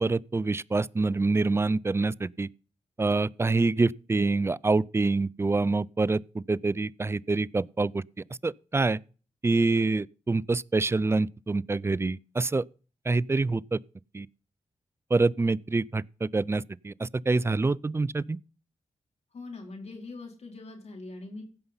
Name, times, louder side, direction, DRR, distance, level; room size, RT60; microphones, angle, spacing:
voice 1, 0.0-2.5 3.0-8.0 8.4-9.0 9.4-12.6 13.1-13.8 14.1-14.3 15.1-18.4, right 3 dB, 20° right, 0.4 m, -26 dB
voice 2, 19.3-21.4, left 3 dB, 60° left, 4.4 m, -42 dB
15.5 x 5.6 x 5.5 m
cardioid pair, 55°, 12 cm